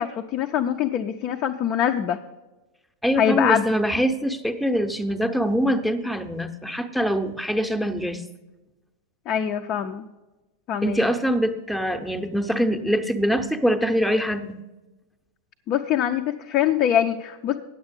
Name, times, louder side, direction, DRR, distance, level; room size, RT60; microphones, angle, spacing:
voice 1, 0.0-2.2 3.2-3.7 9.3-10.1 10.7-11.0 15.7-17.6, left 9 dB, 35° left, 4 dB, 0.5 m, -23 dB
voice 2, 3.0-8.2 10.8-14.6, equal, ahead, 6 dB, 0.7 m, -24 dB
9.5 x 7.9 x 5.2 m, 1.1 s
figure-of-eight pair, 90°, 0 cm